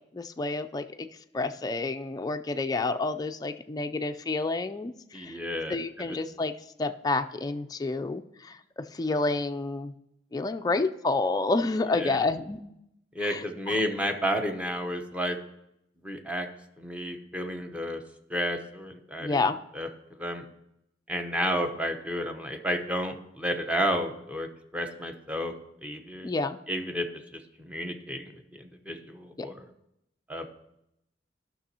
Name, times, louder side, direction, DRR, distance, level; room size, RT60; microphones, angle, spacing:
voice 1, 0.1-1.1 1.3-5.4 5.7-6.5 6.8-9.9 10.3-12.6 13.2-13.8 19.2-19.6 26.2-26.6 29.4-29.5, left 3 dB, 20° left, 7 dB, 0.3 m, -29 dB
voice 2, 5.1-5.8 12.0-12.2 13.1-15.4 16.0-16.5 16.8-18.0 18.3-19.4 19.7-19.9 20.2-20.4 21.1-24.5 24.7-25.5 25.8-26.3 26.7-27.1 27.6-28.3 28.6-29.6 30.3-30.5, equal, 5° right, 4 dB, 0.8 m, -31 dB
15.0 x 6.0 x 2.8 m, 0.82 s
head